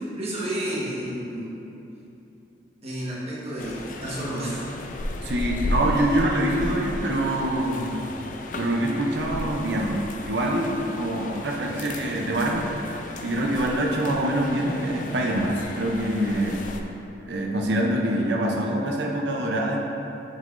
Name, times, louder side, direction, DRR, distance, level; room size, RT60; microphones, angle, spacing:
voice 1, 0.0-1.5 2.8-4.7, right 1 dB, 35° right, -7 dB, 1.3 m, -31 dB
sound 1, 3.6-16.8, left 2 dB, 45° left, 0.4 m, -34 dB
voice 2, 5.2-7.9 8.6-10.0 10.2-16.6 17.3-19.8, right 1 dB, 75° right, -1 dB, 0.6 m, -25 dB
8.0 x 5.6 x 2.6 m, 2.8 s
head